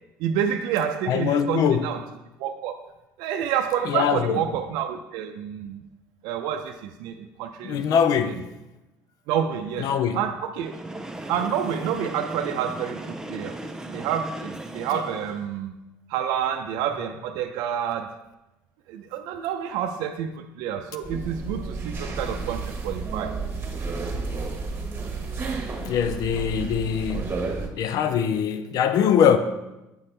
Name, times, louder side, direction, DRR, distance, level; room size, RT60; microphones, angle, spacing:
voice 1, 0.2-2.0 2.4-2.7 3.2-5.8 6.2-7.9 8.3-8.4 9.3-9.9 10.1-10.8 11.3-13.6 13.9-15.7 16.1-18.2 18.9-23.3, right 9 dB, 75° right, 0.5 m, -28 dB
voice 2, 1.1-1.9 3.8-4.4 7.6-8.4 9.8-10.2 14.9-15.0 25.8-27.3 27.8-29.4, left 8 dB, 60° left, 0.5 m, -22 dB
Train, 10.5-15.6, right 1 dB, 10° right, 0.7 m, -37 dB
sound 1, 21.0-27.7, right 4 dB, 35° right, 1.2 m, -31 dB
8.3 x 4.2 x 3.3 m
supercardioid pair, 90°, 7 cm